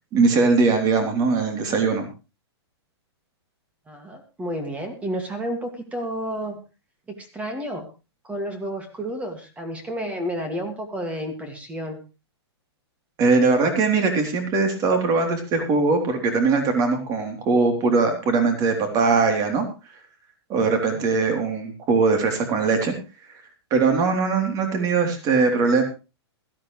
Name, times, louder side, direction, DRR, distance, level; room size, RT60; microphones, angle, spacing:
voice 1, 0.1-2.1 13.2-19.6 20.5-22.9 23.7-25.8, right 4 dB, 25° right, 5 dB, 3.4 m, -21 dB
voice 2, 3.9-6.6 7.1-7.9 8.2-12.0 20.9-21.2, equal, 10° right, 6 dB, 2.2 m, -31 dB
17.0 x 14.0 x 3.2 m, 0.30 s
hypercardioid pair, 155°, 14 cm